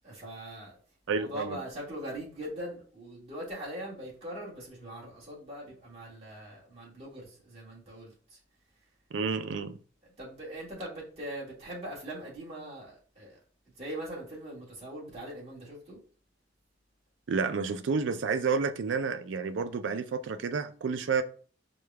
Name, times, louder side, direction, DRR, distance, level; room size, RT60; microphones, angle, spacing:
voice 1, 0.0-0.8 1.1-8.4 10.2-13.4 13.8-16.0, right 1 dB, 35° right, 1.7 m, -41 dB
voice 2, 1.1-1.6 9.1-9.8 17.3-21.2, right 5 dB, 85° right, 0.4 m, -30 dB
4.8 x 2.3 x 3.3 m
head